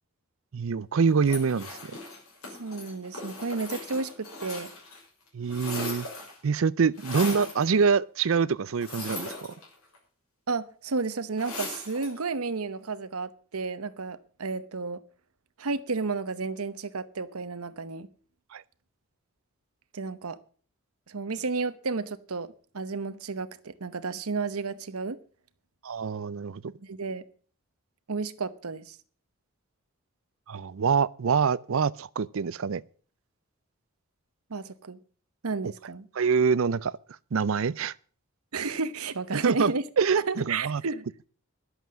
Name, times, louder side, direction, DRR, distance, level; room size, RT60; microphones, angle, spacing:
voice 1, 0.5-1.7 5.3-6.1 6.4-9.5 18.5-18.6 25.8-26.6 30.5-32.8 35.6-35.7 36.1-37.0 37.3-37.9 39.4-39.7 40.0-40.8, right 5 dB, 65° right, 0.5 m, -25 dB
sound 1, 1.2-5.0 5.3-6.4 7.0-7.6 8.8-10.0 11.4-12.2, left 3 dB, 85° left, 6.1 m, -38 dB
voice 2, 2.6-4.7 10.5-15.0 15.6-18.1 19.9-20.4 21.1-25.2 26.8-27.2 28.1-29.0 34.5-35.0 35.4-36.1 38.5-39.8 40.1-41.0, right 4 dB, 85° right, 0.9 m, -32 dB
11.5 x 8.0 x 7.3 m
head